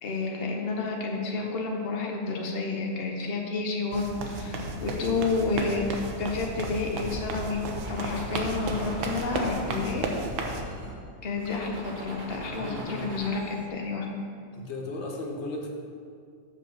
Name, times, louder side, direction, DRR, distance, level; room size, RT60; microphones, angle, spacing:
voice 1, 0.0-10.1 11.2-14.1, left 3 dB, 75° left, 0 dB, 0.5 m, -30 dB
sound 1, 3.9-10.6, right 3 dB, 75° right, 1.5 m, -34 dB
sound 2, 4.0-10.9, left 2 dB, 90° left, 1.6 m, -41 dB
sound 3, 7.7-10.9 11.4-13.7, right 1 dB, 35° right, 0.8 m, -41 dB
voice 2, 12.5-13.1 14.5-15.7, left 2 dB, 50° left, 0 dB, 0.8 m, -36 dB
6.5 x 5.4 x 7.0 m, 2.3 s
omnidirectional pair, 2.2 m